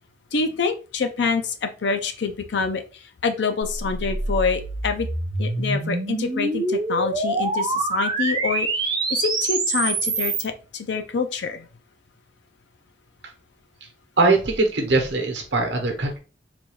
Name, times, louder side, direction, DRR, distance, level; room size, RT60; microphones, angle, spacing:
voice 1, 0.3-2.8 3.2-5.1 5.4-11.7, left 5 dB, 65° left, 8 dB, 0.5 m, -26 dB
sound 1, 3.6-10.5, right 3 dB, 25° right, 0.5 m, -25 dB
voice 2, 14.2-16.2, right 3 dB, 65° right, 3 dB, 0.9 m, -21 dB
3.8 x 2.3 x 3.1 m, 0.34 s
head